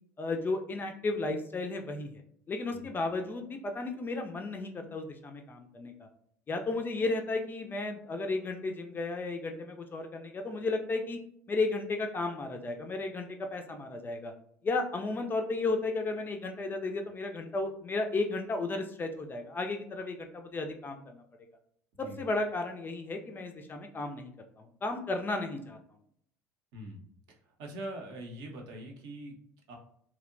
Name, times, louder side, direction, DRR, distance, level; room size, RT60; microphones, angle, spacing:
voice 1, 0.2-2.2 2.5-6.1 6.5-11.2 11.5-14.3 14.6-21.2 22.0-25.8, left 3 dB, 25° left, 4 dB, 0.3 m, -34 dB
voice 2, 26.7-29.4 29.7-29.8, right 1 dB, 55° right, 1 dB, 0.6 m, -43 dB
2.7 x 2.0 x 2.5 m, 0.68 s
figure-of-eight pair, 65°, 9 cm